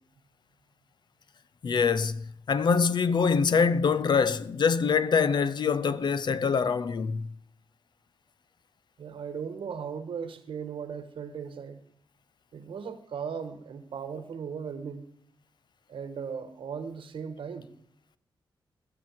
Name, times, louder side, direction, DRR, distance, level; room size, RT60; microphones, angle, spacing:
voice 1, 1.6-7.3, left 5 dB, 60° left, 0.7 m, -24 dB
voice 2, 9.0-11.8 12.5-15.1 15.9-17.7, right 6 dB, 85° right, 1.3 m, -37 dB
20.0 x 7.8 x 4.6 m
wide cardioid pair, 100°, 9 cm